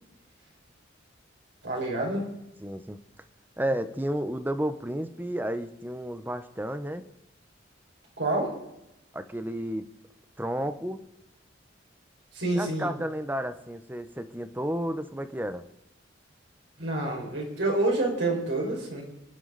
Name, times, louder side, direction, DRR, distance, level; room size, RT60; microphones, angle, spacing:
voice 1, 1.6-2.2 8.2-8.5 12.3-12.9 16.8-19.0, right 2 dB, 65° right, -2 dB, 5.8 m, -27 dB
voice 2, 2.6-3.0 3.6-7.0 9.1-9.9 10.4-11.0 12.5-15.6, right 1 dB, 10° right, 10 dB, 1.0 m, -32 dB
28.0 x 11.0 x 4.2 m, 0.88 s
head